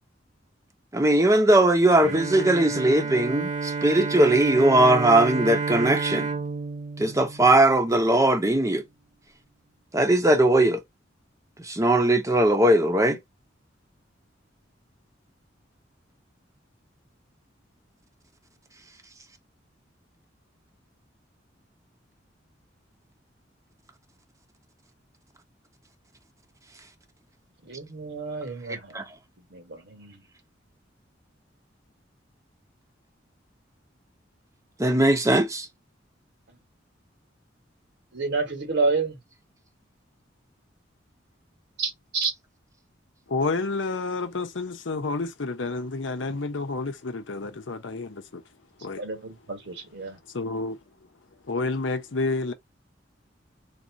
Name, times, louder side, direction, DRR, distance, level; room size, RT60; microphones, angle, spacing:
voice 1, 0.9-6.3 7.0-8.8 9.9-10.8 11.6-13.2 28.9-29.0 34.8-35.7, right 1 dB, 15° right, 0.8 m, -20 dB
Bowed string instrument, 2.0-8.2, right 4 dB, 40° right, 0.6 m, -30 dB
voice 2, 27.6-29.1 29.5-30.2 38.1-39.2 41.8-42.3 49.0-50.2, right 4 dB, 65° right, 1.5 m, -29 dB
voice 3, 43.3-48.4 48.8-49.0 50.3-50.8 51.5-52.5, left 3 dB, 85° left, 0.8 m, -29 dB
4.1 x 2.5 x 2.7 m
head